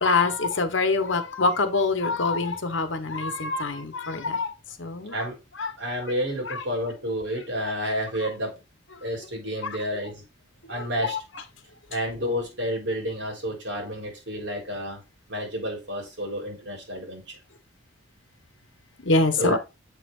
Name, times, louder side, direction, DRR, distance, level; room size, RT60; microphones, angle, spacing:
voice 1, 0.0-4.5 4.8-5.3 5.6-5.7 6.5-6.6 7.6-7.7 10.8-11.2 19.0-19.6, left 3 dB, 65° left, 1.1 m, -25 dB
voice 2, 5.8-8.6 9.0-10.2 10.7-11.2 11.9-15.0 15.3-17.4 19.4-19.6, equal, 60° right, 3.7 m, -30 dB
7.4 x 5.8 x 2.5 m
head